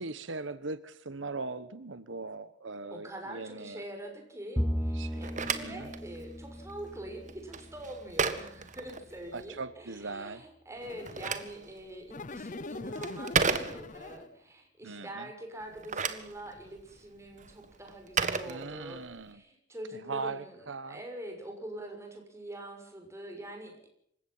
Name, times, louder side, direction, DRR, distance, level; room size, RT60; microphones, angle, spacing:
voice 1, 0.0-3.8 4.9-5.3 5.6-5.9 9.3-10.5 14.8-15.3 18.5-19.4 19.9-21.0, right 3 dB, 85° right, 14 dB, 1.2 m, -40 dB
voice 2, 2.9-23.8, right 1 dB, 15° right, 3 dB, 6.4 m, -44 dB
Bowed string instrument, 4.6-8.1, equal, 5° left, 0.8 m, -36 dB
Telephone, 5.0-9.5 10.8-14.2 15.6-19.2, right 5 dB, 40° right, 1.7 m, -35 dB
sound 1, 10.8-11.5 12.1-14.4, left 3 dB, 40° left, 0.7 m, -42 dB
27.5 x 16.5 x 5.7 m, 0.70 s
head